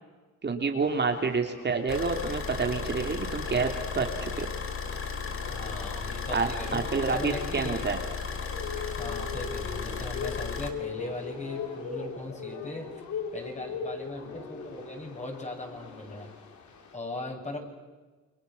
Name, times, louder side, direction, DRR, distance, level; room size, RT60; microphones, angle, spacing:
voice 1, 0.4-4.5 6.3-8.0, right 4 dB, 35° right, 4 dB, 3.1 m, -28 dB
sound 1, 0.8-17.0, left 6 dB, 70° left, 5.0 m, -41 dB
Car / Idling, 1.9-10.7, left 5 dB, 45° left, 4.1 m, -35 dB
voice 2, 5.5-7.9 9.0-13.0 13.3-16.3 16.9-17.6, left 2 dB, 25° left, 2 dB, 7.8 m, -39 dB
30.0 x 23.5 x 7.2 m, 1.3 s
cardioid pair, 90°, 30 cm